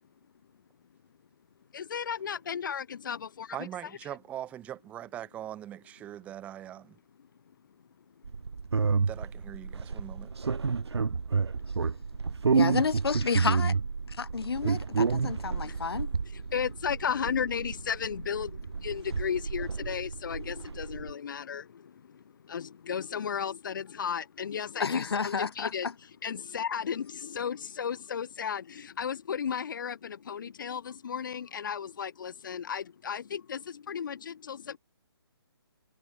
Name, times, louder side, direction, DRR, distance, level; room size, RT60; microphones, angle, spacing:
voice 1, 1.7-3.7 4.1-4.2 7.2-7.3 8.1-8.2 10.8-12.6 15.3-25.9 26.2-34.8, left 7 dB, 50° left, 2.0 m, -35 dB
voice 2, 3.5-7.0 9.1-10.3, right 11 dB, 10° right, 1.4 m, -41 dB
sound 1, 8.2-21.1, right 5 dB, 80° right, 2.2 m, -30 dB
voice 3, 12.5-13.7 14.1-16.1 24.8-25.7, left 5 dB, 70° left, 3.2 m, -30 dB
hypercardioid pair, 165°, 14 cm